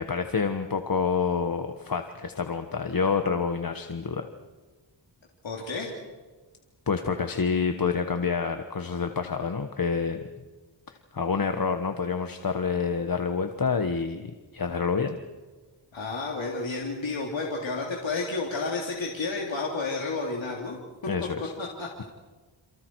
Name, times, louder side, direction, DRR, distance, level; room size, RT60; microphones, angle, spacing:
voice 1, 0.0-4.3 6.9-10.3 10.9-15.2 21.1-21.5 22.0-22.1, left 5 dB, 50° left, 7 dB, 1.3 m, -28 dB
voice 2, 5.4-5.9 15.9-20.8 21.6-22.0, left 3 dB, 80° left, -2 dB, 3.5 m, -31 dB
29.0 x 28.0 x 4.7 m, 1.3 s
wide cardioid pair, 100°, 45 cm